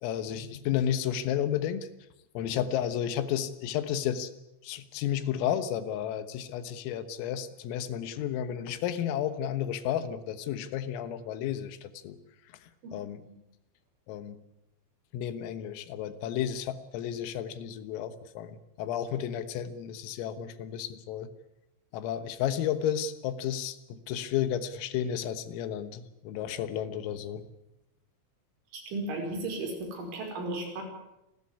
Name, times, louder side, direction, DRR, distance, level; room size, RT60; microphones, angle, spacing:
voice 1, 0.0-1.9 2.4-4.3 4.6-12.2 12.9-13.2 14.1-14.4 15.1-21.3 21.9-27.4, left 10 dB, 85° left, 12 dB, 3.9 m, -32 dB
voice 2, 28.7-30.8, right 2 dB, 65° right, 2 dB, 7.6 m, -35 dB
29.0 x 13.0 x 9.8 m, 0.90 s
omnidirectional pair, 5.9 m